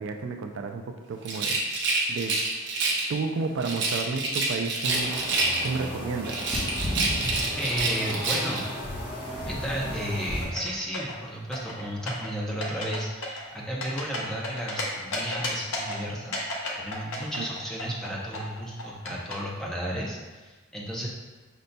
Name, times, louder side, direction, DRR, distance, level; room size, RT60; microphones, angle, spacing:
voice 1, 0.0-1.6 2.1-2.4 3.1-5.2 5.6-6.4 17.4-17.5, right 4 dB, 70° right, 5 dB, 0.3 m, -31 dB
Rattle, 1.2-3.2 3.6-5.9 6.2-8.7, right 3 dB, 55° right, 0.7 m, -28 dB
sound 1, 4.8-10.4, left 1 dB, 20° left, 1.0 m, -34 dB
voice 2, 7.6-8.7 9.5-16.4 16.8-21.1, equal, 5° left, -4 dB, 0.6 m, -33 dB
sound 2, 10.4-11.2 11.5-12.3 12.6-13.0 13.2-14.8 15.1-16.0 16.3-18.1 18.3-19.3, left 2 dB, 80° left, 0.8 m, -32 dB
5.2 x 3.9 x 2.2 m, 1.3 s
head